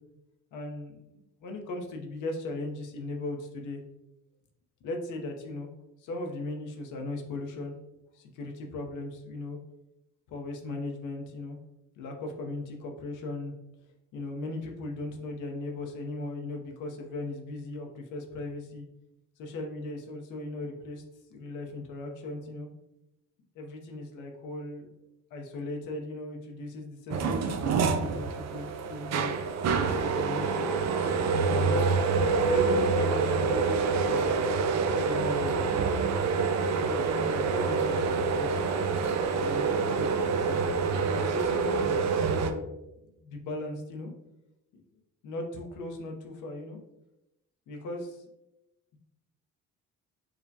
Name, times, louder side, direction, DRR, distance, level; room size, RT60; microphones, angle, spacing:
voice 1, 0.5-3.8 4.8-5.7 6.0-7.7 8.1-9.6 10.3-11.6 12.0-13.5 14.1-18.9 19.4-21.0 21.3-22.7 23.5-24.9 25.3-30.7 31.4-31.9 32.4-34.3 35.0-36.0 36.6-38.7 39.3-42.0 42.3-42.7 43.2-44.1 44.7-44.8 45.2-46.8 47.7-48.2, left 2 dB, 85° left, 2 dB, 0.7 m, -38 dB
sound 1, 27.1-42.5, right 4 dB, 60° right, 0.4 m, -27 dB
4.8 x 2.1 x 2.6 m, 0.91 s
cardioid pair, 90°, 30 cm